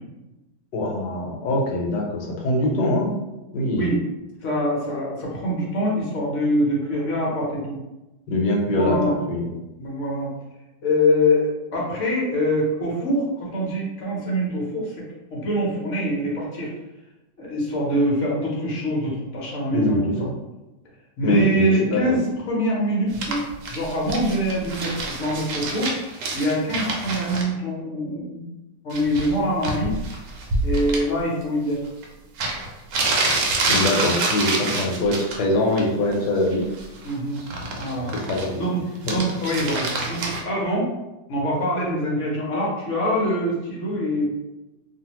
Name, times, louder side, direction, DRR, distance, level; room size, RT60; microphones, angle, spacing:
voice 1, 0.7-3.1 3.5-3.9 8.3-9.6 19.7-20.2 21.2-22.2 33.7-36.6 38.1-38.6 39.1-39.2, left 1 dB, 75° left, 0 dB, 1.2 m, -23 dB
voice 2, 4.4-7.8 8.7-9.2 9.8-10.3 10.8-16.7 17.4-20.0 21.2-23.4 23.7-28.5 28.8-29.9 30.6-31.9 34.5-34.9 37.0-37.4 37.8-38.1 38.5-40.9 41.3-44.3, equal, 55° left, -4 dB, 0.9 m, -24 dB
sound 1, 23.1-27.4 28.9-29.3 29.6-31.0 32.0-32.1 32.4-35.4 35.7-36.2 36.4-38.6 39.0-40.4, right 2 dB, 75° right, 1.2 m, -27 dB
2.7 x 2.6 x 2.9 m, 1.0 s
omnidirectional pair, 1.9 m